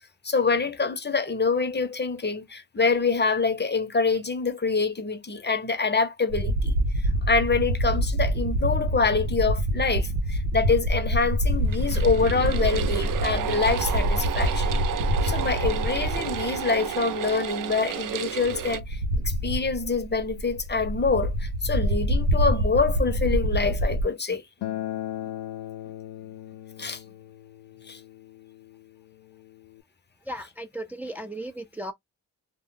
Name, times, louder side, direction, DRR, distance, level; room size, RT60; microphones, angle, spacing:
voice 1, 0.2-6.7 7.3-14.7 15.2-19.0 19.2-24.4 26.8-27.0 27.9-28.0, left 4 dB, 25° left, 0.8 m, -25 dB
sound 1, 6.3-16.9 17.2-17.3 18.4-24.0, equal, 85° right, 0.8 m, -26 dB
sound 2, 11.6-18.8, right 9 dB, 55° right, 0.5 m, -31 dB
Acoustic guitar, 24.6-29.8, left 13 dB, 80° left, 0.5 m, -38 dB
voice 2, 30.3-31.9, right 1 dB, 5° right, 0.5 m, -36 dB
2.2 x 2.0 x 3.8 m
supercardioid pair, 45°, 39 cm